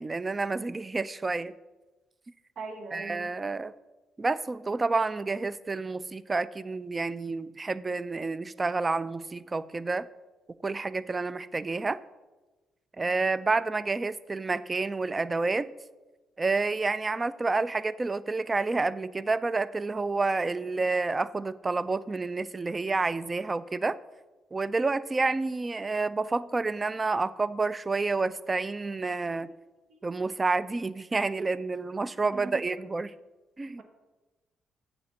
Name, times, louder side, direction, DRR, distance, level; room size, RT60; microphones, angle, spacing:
voice 1, 0.0-1.5 2.9-3.7 4.2-10.1 10.6-12.0 13.0-15.7 16.4-24.0 24.5-29.5 30.0-33.1 33.6-33.8, right 3 dB, 25° right, 16 dB, 0.3 m, -29 dB
voice 2, 2.6-3.3 29.9-30.0 32.3-32.6, right 3 dB, 65° right, 4 dB, 1.1 m, -41 dB
7.7 x 4.3 x 6.9 m, 1.2 s
cardioid pair, 90°, 0 cm